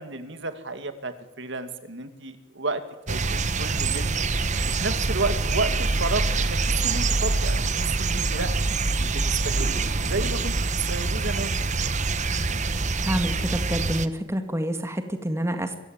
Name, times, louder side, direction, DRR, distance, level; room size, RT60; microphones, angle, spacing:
voice 1, 0.0-4.1 4.8-8.5 9.0-10.5 10.9-11.5, right 2 dB, 60° right, 9 dB, 2.4 m, -32 dB
sound 1, 3.1-14.1, right 3 dB, 35° right, 1.0 m, -25 dB
voice 2, 13.0-15.8, equal, 15° right, 7 dB, 1.9 m, -28 dB
25.0 x 15.5 x 9.1 m, 1.0 s
head